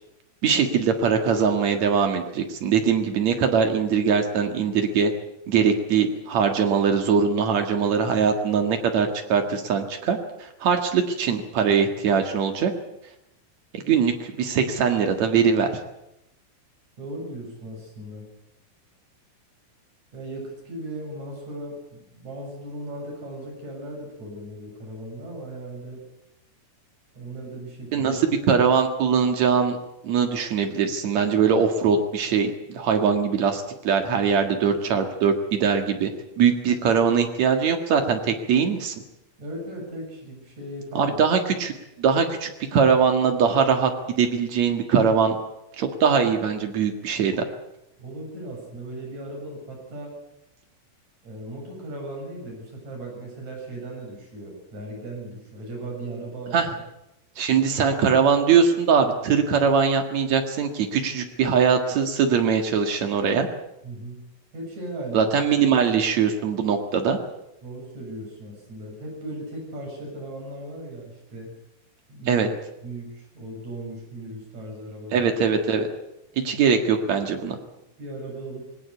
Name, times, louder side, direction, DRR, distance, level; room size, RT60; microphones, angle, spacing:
voice 1, 0.4-5.1 5.5-12.7 13.7-15.7 27.9-29.8 30.0-36.1 36.4-38.9 40.9-41.7 42.0-45.4 45.8-47.4 56.5-56.7 57.4-63.5 65.1-67.2 72.3-72.5 75.1-75.9 76.4-77.6, right 6 dB, 65° right, 5 dB, 1.7 m, -21 dB
voice 2, 17.0-18.3 20.1-26.0 27.1-28.1 39.4-41.2 48.0-50.2 51.2-56.8 57.5-57.6 63.8-64.2 64.5-65.3 67.6-71.5 72.1-72.5 72.8-75.3 78.0-78.7, right 1 dB, 35° right, 0 dB, 8.4 m, -37 dB
20.5 x 18.5 x 8.3 m, 0.86 s
omnidirectional pair, 6.0 m